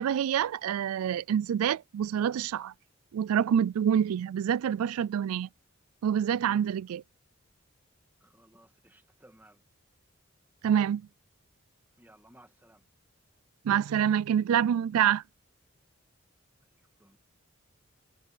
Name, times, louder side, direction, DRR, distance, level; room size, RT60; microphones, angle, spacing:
voice 1, 0.0-2.7 3.1-5.5 6.0-7.0 10.6-11.0 13.6-15.2, right 9 dB, 85° right, 0.3 m, -26 dB
voice 2, 8.2-9.6 12.0-12.9 16.8-17.2, right 1 dB, 10° right, 1.8 m, -59 dB
head